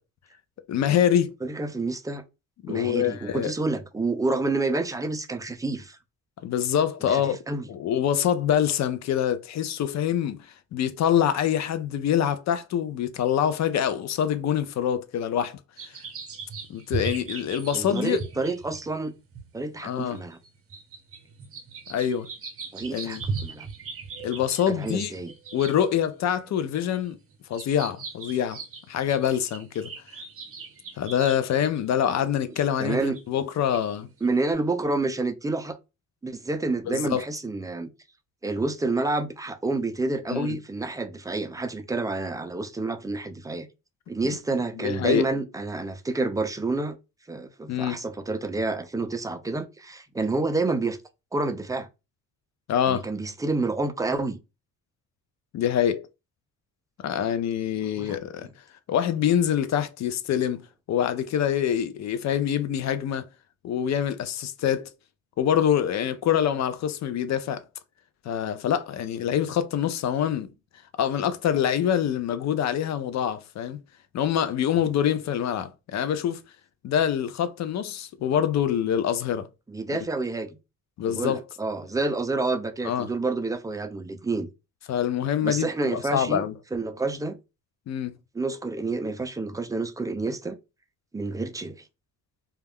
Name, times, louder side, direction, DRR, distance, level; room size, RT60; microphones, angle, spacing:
voice 1, 0.7-1.3 2.6-3.5 6.4-7.4 7.7-15.6 15.8-16.0 16.7-18.2 19.8-20.2 21.9-22.3 22.9-23.2 24.2-25.1 25.5-27.2 27.5-28.6 28.9-29.9 31.0-34.1 36.9-37.3 40.3-40.6 44.2-44.3 44.8-45.2 47.7-48.0 52.7-53.1 55.5-56.1 57.0-58.5 58.9-63.3 63.6-64.9 65.4-67.6 68.2-70.5 71.0-73.8 74.1-76.4 76.8-79.5 79.9-80.0 81.0-81.4 82.8-83.1 84.9-86.5 87.9-88.1, left 9 dB, 55° left, 0.5 m, -25 dB
voice 2, 1.4-2.2 2.7-6.0 7.1-7.6 17.7-19.1 19.5-20.4 22.7-23.7 24.7-25.3 32.8-33.2 34.2-35.8 36.2-37.9 38.4-43.7 44.1-47.0 47.3-51.0 51.3-51.9 52.9-54.4 58.0-58.2 79.7-80.5 81.0-84.5 85.4-86.4 86.7-87.4 88.3-90.6 91.1-91.8, right 3 dB, 10° right, 0.4 m, -29 dB
sound 1, 15.8-25.9 26.5-32.0 32.6-32.7 33.1-33.2 33.7-33.8 34.2-34.5, right 4 dB, 45° right, 0.7 m, -38 dB
2.3 x 2.2 x 3.4 m
cardioid pair, 90°, 33 cm